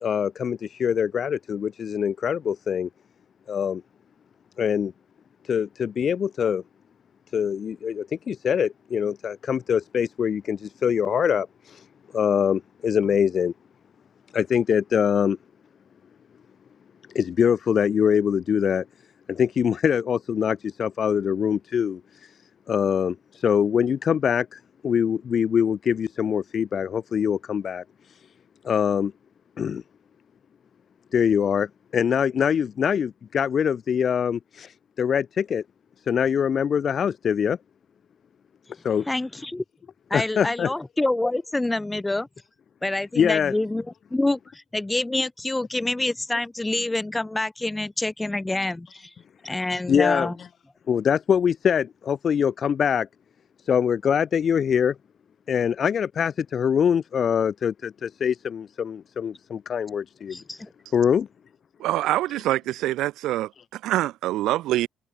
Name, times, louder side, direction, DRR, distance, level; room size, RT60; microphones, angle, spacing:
voice 1, 0.0-2.9 3.5-3.8 4.6-4.9 5.4-6.6 7.3-11.9 12.1-13.5 14.3-15.4 17.1-18.8 19.3-22.4 22.7-28.3 28.6-29.1 29.6-29.8 31.1-35.6 36.1-37.6 38.7-39.1 40.1-40.7 43.2-43.5 49.9-50.3 50.9-53.1 53.6-54.9 55.5-60.4 60.9-61.3, left 7 dB, 60° left, 1.5 m, -24 dB
voice 2, 39.1-39.6 40.1-42.3 42.8-43.9 44.1-49.1 49.4-50.4 60.3-60.7, left 2 dB, 15° left, 3.5 m, -27 dB
voice 3, 61.8-64.9, right 15 dB, 80° right, 2.6 m, -25 dB
hypercardioid pair, 50°, 0 cm